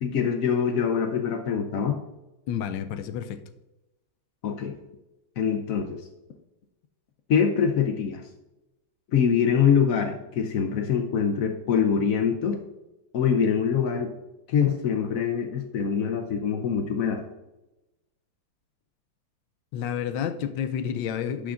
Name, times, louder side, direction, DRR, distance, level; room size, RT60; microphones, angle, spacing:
voice 1, 0.0-2.0 4.4-4.8 5.4-6.0 7.3-8.2 9.1-12.6 13.1-14.1 14.5-17.2, left 7 dB, 90° left, 5 dB, 0.7 m, -24 dB
voice 2, 2.5-3.4 19.7-21.5, left 8 dB, 75° left, 10 dB, 1.2 m, -30 dB
11.0 x 6.9 x 2.5 m, 0.98 s
omnidirectional pair, 2.3 m